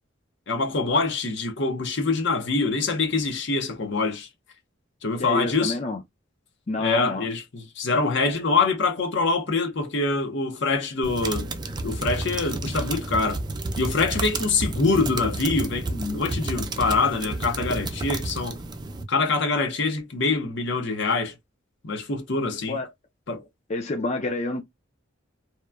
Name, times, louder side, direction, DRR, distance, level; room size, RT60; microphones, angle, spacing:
voice 1, 0.5-4.3 5.0-5.8 6.8-11.5 11.8-13.4 13.8-18.6 19.1-21.3 21.8-22.8 23.3-23.4, left 3 dB, 65° left, 0.8 m, -25 dB
voice 2, 5.2-6.0 6.7-7.3 22.7-22.9 23.7-24.6, left 2 dB, 35° left, 0.5 m, -28 dB
sound 1, 11.0-19.0, right 2 dB, 20° right, 0.4 m, -31 dB
2.9 x 2.2 x 2.3 m
head